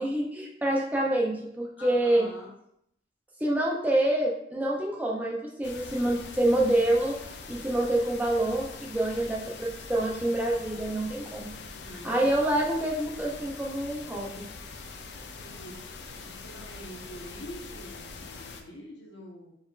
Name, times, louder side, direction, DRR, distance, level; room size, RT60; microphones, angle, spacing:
voice 1, 0.0-2.3 3.4-7.2 7.5-11.5 12.0-14.4, right 1 dB, 10° right, -3 dB, 0.5 m, -27 dB
voice 2, 1.8-2.5 11.5-12.2 15.1-19.5, equal, 85° left, -1 dB, 1.0 m, -46 dB
sound 1, 5.6-18.6, left 4 dB, 70° left, 0.4 m, -43 dB
4.2 x 3.5 x 2.4 m, 0.73 s
head